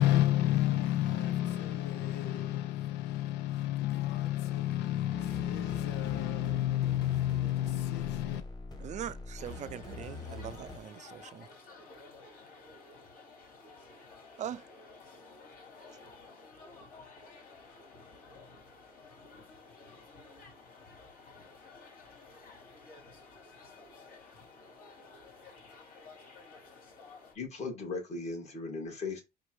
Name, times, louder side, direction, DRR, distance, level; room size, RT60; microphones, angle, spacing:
voice 1, 0.0-8.4, left 13 dB, 80° left, 0.5 m, -30 dB
sound 1, 5.1-10.8, left 3 dB, 25° left, 1.8 m, -44 dB
voice 2, 8.8-11.5 14.4-14.6, right 10 dB, 45° right, 0.4 m, -41 dB
sound 2, 9.4-27.3, left 3 dB, 55° left, 2.9 m, -53 dB
voice 3, 27.3-29.2, left 3 dB, 40° left, 2.4 m, -37 dB
4.4 x 2.6 x 4.5 m
cardioid pair, 110°, 17 cm